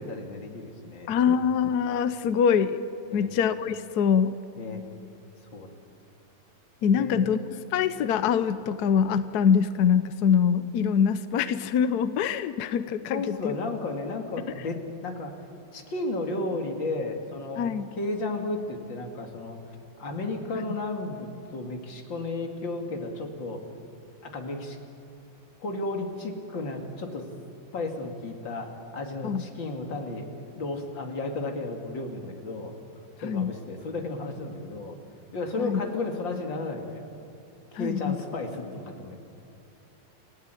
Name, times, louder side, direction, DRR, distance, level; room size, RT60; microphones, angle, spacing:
voice 1, 0.0-1.5 3.1-3.3 4.6-4.8 5.5-5.7 6.9-7.3 13.1-15.3 15.7-19.6 20.0-23.6 24.2-24.8 25.6-27.3 27.7-30.3 30.6-32.7 33.2-35.0 35.3-37.0 37.7-39.2, left 2 dB, 90° left, 3 dB, 3.0 m, -33 dB
voice 2, 1.1-2.8 3.1-4.3 6.8-13.6 17.6-17.9 20.5-20.6 29.2-29.4 33.2-33.5 35.6-35.8 37.7-38.2, left 7 dB, 65° left, 12 dB, 1.2 m, -24 dB
29.5 x 16.0 x 9.1 m, 2.8 s
omnidirectional pair, 2.0 m